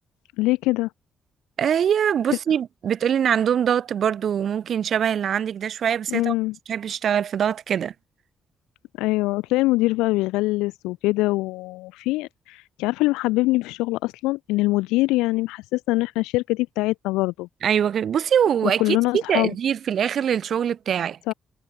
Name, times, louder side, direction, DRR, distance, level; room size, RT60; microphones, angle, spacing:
voice 1, 0.4-0.9 6.1-6.5 9.0-17.5 18.6-19.5 21.3-21.4, left 20 dB, 85° left, 5.0 m, -23 dB
voice 2, 1.6-6.3 6.7-7.9 17.6-21.2, right 8 dB, 65° right, 2.8 m, -23 dB
supercardioid pair, 50°, 0 cm